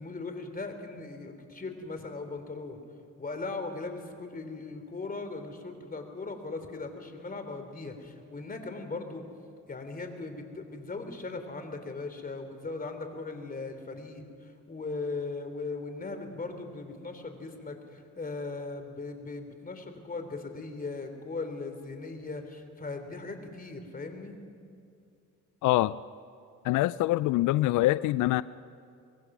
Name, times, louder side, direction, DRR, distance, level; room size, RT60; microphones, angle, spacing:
voice 1, 0.0-2.8 3.2-9.2 9.7-24.4, left 3 dB, 30° left, 6 dB, 3.2 m, -38 dB
voice 2, 25.6-25.9 26.6-28.4, left 16 dB, 80° left, 16 dB, 0.4 m, -24 dB
24.5 x 21.0 x 6.1 m, 2.4 s
cardioid pair, 90°, 30 cm